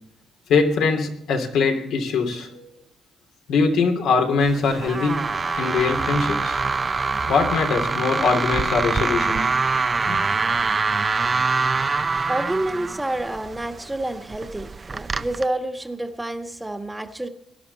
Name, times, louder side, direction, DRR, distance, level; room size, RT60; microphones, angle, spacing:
voice 1, 0.5-2.7 3.5-5.3 5.5-6.6 7.3-9.5 10.0-10.3, left 4 dB, 80° left, 3 dB, 2.9 m, -22 dB
sound 1, 4.4-15.4, right 4 dB, 30° right, 0.6 m, -25 dB
voice 2, 11.9-17.3, right 1 dB, 10° right, 7 dB, 1.4 m, -29 dB
19.5 x 11.0 x 4.1 m, 0.75 s
cardioid pair, 90°, 0 cm